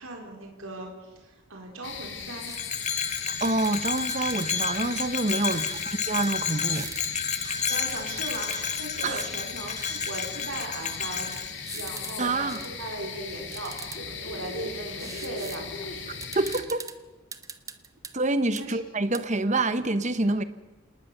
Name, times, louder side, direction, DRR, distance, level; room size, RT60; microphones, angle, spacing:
voice 1, 0.0-2.5 5.4-5.7 7.4-11.3 11.7-16.2 18.6-18.8, right 2 dB, 70° right, 4.5 m, -38 dB
sound 1, 1.8-16.6, left 5 dB, 55° left, 3.0 m, -39 dB
Bell, 2.5-11.5, left 7 dB, 30° left, 1.1 m, -31 dB
sound 2, 2.5-2.6 3.2-4.7 5.3-5.9 6.2-6.3 6.7-7.1 7.4-8.6 9.2-9.3 9.8-10.2 10.9-11.0 11.3-12.1 12.5-12.7 13.5-14.0 15.0-15.6 15.9-16.0 16.2-16.9 17.3-18.1 18.6-18.7 19.1-19.2, right 5 dB, 15° right, 1.0 m, -41 dB
voice 2, 3.4-6.9 9.0-9.2 12.2-12.6 16.3-16.9 18.1-20.4, right 2 dB, 35° right, 1.1 m, -27 dB
27.5 x 19.5 x 6.8 m
head